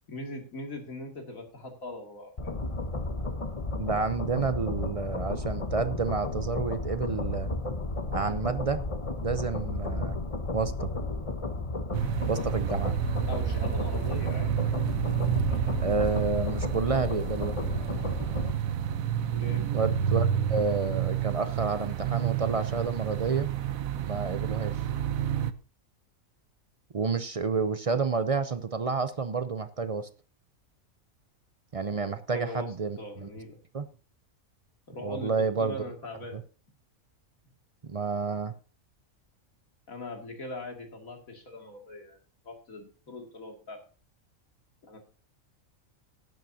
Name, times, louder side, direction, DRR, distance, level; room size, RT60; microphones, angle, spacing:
voice 1, 0.1-2.5 13.3-14.8 19.3-19.6 31.9-33.6 34.9-36.4 39.9-42.2 42.4-43.8 44.8-45.0, left 2 dB, 85° left, 2 dB, 2.8 m, -41 dB
sound 1, 2.4-18.5, left 2 dB, 30° left, 0.9 m, -33 dB
voice 2, 3.8-7.5 8.1-8.8 9.2-10.2 10.5-10.9 12.3-13.0 15.8-17.5 19.7-23.5 24.0-24.8 26.9-30.1 31.7-33.3 33.7-33.9 35.0-35.9 36.3-36.4 37.8-38.5, right 5 dB, 50° right, 11 dB, 0.4 m, -29 dB
sound 2, 11.9-25.5, right 9 dB, 80° right, 1.2 m, -30 dB
17.5 x 9.3 x 2.7 m, 0.36 s
omnidirectional pair, 1.4 m